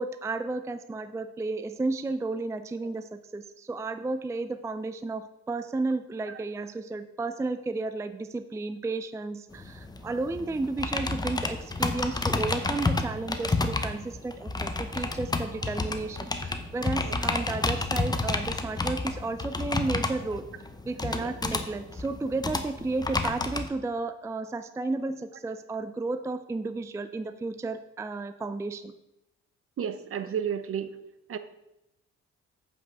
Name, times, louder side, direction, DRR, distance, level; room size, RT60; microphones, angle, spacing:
voice 1, 0.0-20.5 20.9-28.9 30.2-30.3, right 3 dB, 10° right, 10 dB, 0.4 m, -33 dB
sound 1, 9.5-23.7, left 2 dB, 15° left, 0.8 m, -30 dB
voice 2, 29.8-31.0 31.3-31.4, right 8 dB, 45° right, 12 dB, 0.7 m, -32 dB
8.4 x 5.5 x 5.3 m, 0.88 s
cardioid pair, 90°, 30 cm